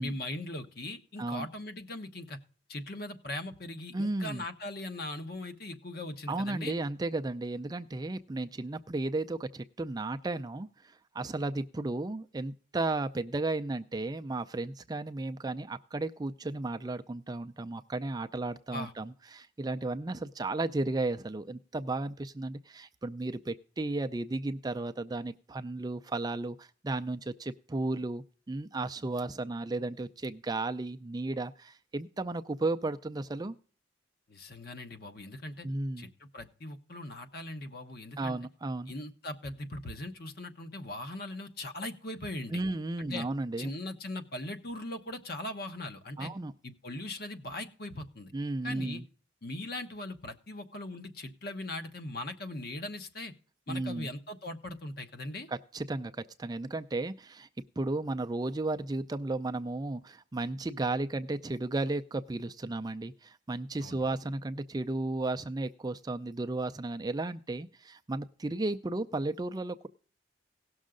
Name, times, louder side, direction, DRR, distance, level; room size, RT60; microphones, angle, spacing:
voice 1, 0.0-2.4 2.7-6.7 18.7-18.9 34.3-35.7 36.0-38.4 38.9-42.6 43.0-43.3 43.6-46.3 46.6-48.3 48.6-49.0 49.4-53.3 53.7-55.5 63.8-64.0, left 1 dB, 50° left, 7 dB, 1.1 m, -40 dB
voice 2, 3.9-4.4 6.3-33.5 35.6-36.1 38.2-38.9 42.5-43.7 46.2-46.5 48.3-49.0 53.7-54.1 55.5-57.5 57.8-69.9, right 2 dB, 20° right, 9 dB, 0.4 m, -34 dB
17.5 x 6.4 x 3.7 m, 0.41 s
head